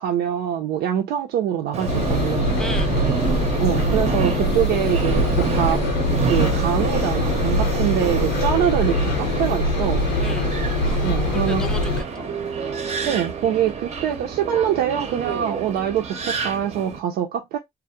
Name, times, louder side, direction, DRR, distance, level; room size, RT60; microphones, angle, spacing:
voice 1, 0.0-2.6 3.6-10.1 11.0-11.6 13.0-17.6, right 10 dB, 80° right, 0.5 m, -24 dB
Subway metro underground, 1.7-17.0, right 5 dB, 40° right, 0.6 m, -28 dB
Engine, 1.9-12.0, left 1 dB, 80° left, 0.9 m, -23 dB
voice 2, 2.6-3.0 10.2-10.5 10.8-12.3, left 1 dB, 5° left, 0.5 m, -35 dB
2.3 x 2.0 x 2.8 m
cardioid pair, 110°, 17 cm